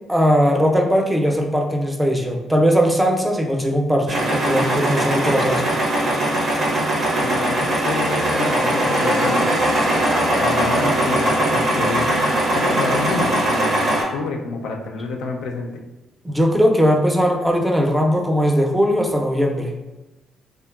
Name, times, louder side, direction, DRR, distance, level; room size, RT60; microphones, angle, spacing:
voice 1, 0.1-5.6 16.2-19.7, equal, 10° right, 1 dB, 0.5 m, -19 dB
sound 1, 4.1-14.0, right 1 dB, 60° right, 0.7 m, -20 dB
voice 2, 7.2-9.5 10.4-12.1 12.5-15.8, left 3 dB, 80° left, 1 dB, 0.3 m, -28 dB
2.7 x 2.2 x 2.3 m, 1.0 s
supercardioid pair, 60°, 0 cm